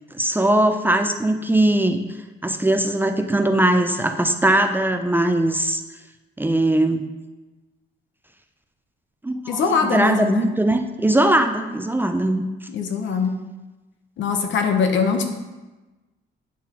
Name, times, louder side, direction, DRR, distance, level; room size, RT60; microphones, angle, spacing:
voice 1, 0.1-2.0 2.4-5.8 6.4-7.1 9.2-12.4, right 1 dB, 10° right, 6 dB, 0.4 m, -20 dB
voice 2, 9.5-10.5 12.7-13.3 14.2-15.2, left 5 dB, 70° left, 6 dB, 0.9 m, -22 dB
8.6 x 5.7 x 2.9 m, 1.2 s
cardioid pair, 90°, 20 cm